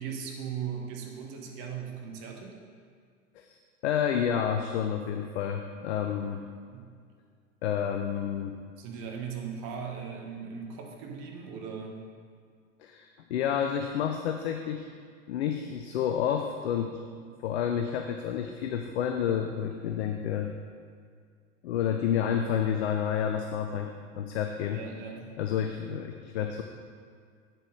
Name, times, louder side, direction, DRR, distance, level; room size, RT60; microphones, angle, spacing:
voice 1, 0.0-2.6 6.7-6.9 8.8-12.0 24.7-25.3, right 6 dB, 40° right, 1 dB, 1.3 m, -38 dB
voice 2, 3.8-6.4 7.6-8.6 12.8-14.9 15.3-17.0 17.4-20.5 21.6-24.8 25.4-26.6, left 8 dB, 55° left, 5 dB, 0.6 m, -30 dB
8.3 x 7.5 x 3.2 m, 2.1 s
figure-of-eight pair, 85°, 39 cm